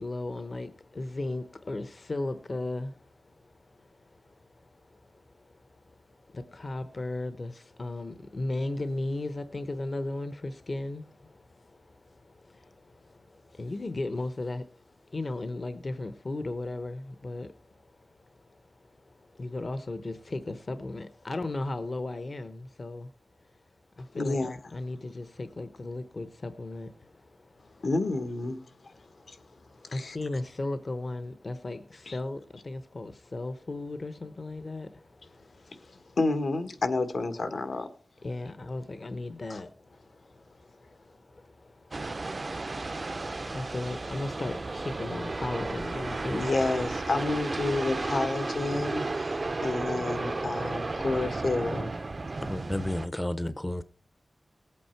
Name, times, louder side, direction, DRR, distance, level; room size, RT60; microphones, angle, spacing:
voice 1, 0.0-23.1 23.4-23.6 23.9-27.9 28.9-36.2 38.2-46.5, left 2 dB, 45° left, 0.8 m, -37 dB
voice 2, 24.1-24.6 27.8-28.6 29.3-29.4 29.9-30.2 32.1-32.2 36.2-37.9 46.3-51.9, left 3 dB, 75° left, 1.4 m, -29 dB
sound 1, 41.9-53.1, right 3 dB, 40° right, 0.5 m, -33 dB
voice 3, 52.5-53.8, left 1 dB, 15° left, 0.5 m, -31 dB
19.0 x 8.5 x 4.5 m
wide cardioid pair, 110°, 0 cm